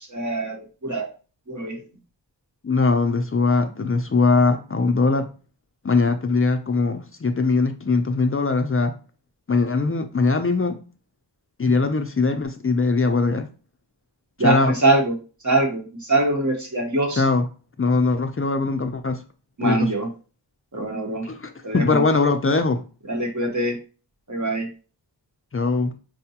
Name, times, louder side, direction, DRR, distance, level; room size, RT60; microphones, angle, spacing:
voice 1, 0.1-1.1 1.5-1.8 14.4-15.1 15.4-17.2 19.6-20.1 20.7-21.3 21.6-22.0 23.1-23.8 24.3-24.7, right 2 dB, 40° right, 2 dB, 1.0 m, -23 dB
voice 2, 2.6-5.3 5.8-8.9 9.5-10.8 11.6-13.5 14.4-14.7 17.2-17.4 17.8-19.2 19.6-19.9 21.4-22.8 25.5-25.9, left 3 dB, 30° left, 8 dB, 0.4 m, -21 dB
4.7 x 2.2 x 2.8 m, 0.36 s
wide cardioid pair, 55°, 45 cm